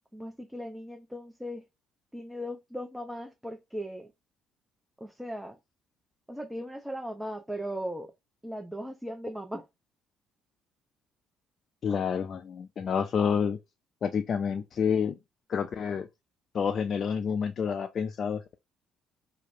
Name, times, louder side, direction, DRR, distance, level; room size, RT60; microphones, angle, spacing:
voice 1, 0.1-1.6 2.1-4.1 5.0-5.6 6.3-8.1 8.4-9.7, equal, 5° right, 0.5 m, -38 dB
voice 2, 11.8-13.6 14.0-15.2 15.5-16.1 16.5-18.5, left 7 dB, 55° left, 0.3 m, -29 dB
2.9 x 2.0 x 2.6 m
hypercardioid pair, 55°, 0 cm